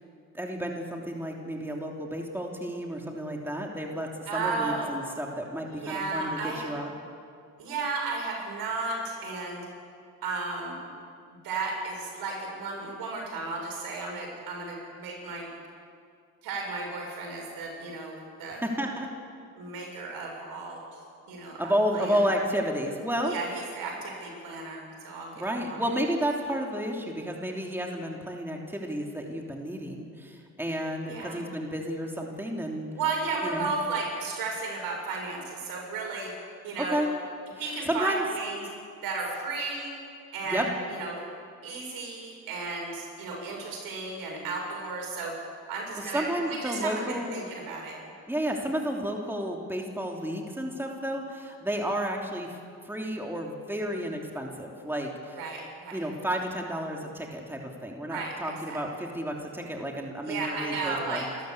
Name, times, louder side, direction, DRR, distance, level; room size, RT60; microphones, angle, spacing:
voice 1, 0.3-6.9 18.6-19.1 21.6-23.3 25.4-32.9 33.4-33.7 36.8-37.1 37.6-38.2 40.4-40.7 46.1-47.4 48.3-52.6 52.8-55.4 55.9-61.3, equal, 5° right, 0 dB, 3.2 m, -31 dB
voice 2, 4.3-4.9 5.7-6.7 7.6-9.7 10.2-10.8 11.3-15.5 16.4-18.6 19.6-21.0 21.3-21.6 21.9-22.2 23.3-25.8 31.1-31.5 33.0-36.3 36.6-37.1 37.6-38.6 39.0-39.9 40.3-41.2 41.6-45.3 45.7-48.0 55.3-56.1 58.1-58.3 58.7-58.8 60.2-61.3, right 3 dB, 80° right, -1 dB, 7.2 m, -34 dB
28.0 x 13.5 x 8.5 m, 2.3 s
supercardioid pair, 80°, 35 cm